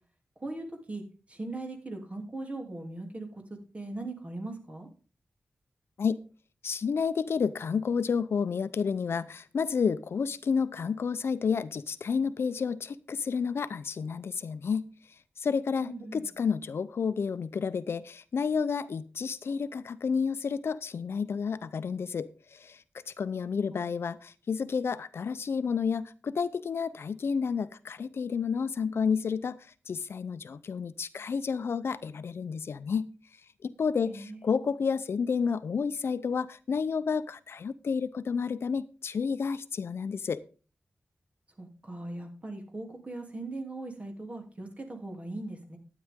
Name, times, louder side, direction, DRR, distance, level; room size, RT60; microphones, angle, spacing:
voice 1, 0.4-1.0 1.3-3.3 3.7-4.9 15.8-16.2 23.3-23.8 34.0-34.5 41.6-45.8, right 2 dB, 30° right, 2 dB, 2.8 m, -39 dB
voice 2, 6.6-14.9 15.4-22.8 23.2-29.6 29.9-33.1 33.6-40.4, left 6 dB, 70° left, 15 dB, 0.6 m, -30 dB
12.5 x 9.3 x 3.6 m, 0.36 s
wide cardioid pair, 125°, 4 cm